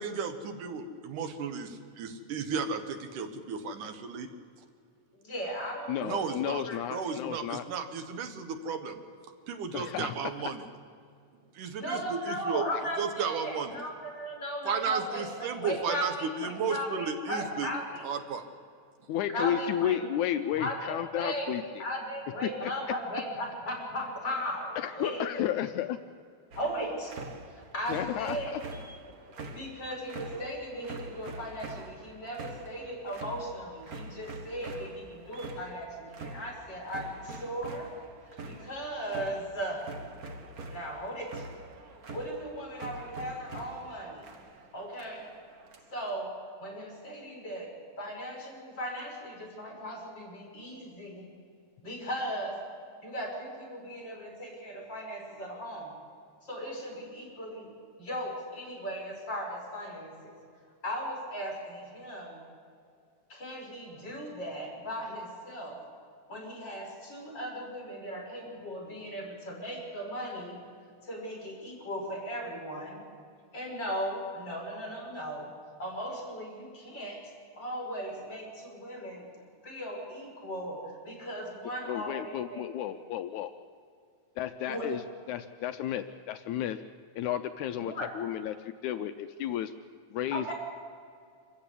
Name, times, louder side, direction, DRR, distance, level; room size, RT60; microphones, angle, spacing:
voice 1, 0.0-4.3 6.0-6.6 6.9-9.0 9.5-10.6 11.5-12.6 13.0-13.8 14.7-17.7 18.0-18.4, right 6 dB, 85° right, 7 dB, 3.0 m, -34 dB
voice 2, 5.2-6.4 6.6-6.8 7.0-7.2 11.6-18.0 19.3-20.0 20.6-25.4 26.6-27.1 27.5-28.7 29.5-37.9 38.4-39.8 40.7-41.4 42.1-44.3 44.7-45.3 45.9-46.3 46.6-51.3 51.8-52.6 53.0-55.9 56.4-57.7 58.0-60.4 60.8-62.4 63.3-65.8 66.3-70.6 71.0-73.0 73.5-75.5 75.8-79.3 79.6-82.9 84.7-84.9 87.8-88.1 90.3-90.5, equal, 35° left, -2 dB, 6.6 m, -37 dB
voice 3, 5.9-7.6 9.7-10.2 19.1-21.6 22.6-22.7 24.8-26.0 27.9-28.6 81.9-83.5 84.4-85.0 85.3-86.8 87.2-89.7 90.1-90.5, left 11 dB, 80° left, 9 dB, 2.0 m, -32 dB
sound 1, 26.5-46.1, right 2 dB, 50° right, 1.1 m, -45 dB
26.5 x 15.0 x 8.4 m, 2.3 s
omnidirectional pair, 3.5 m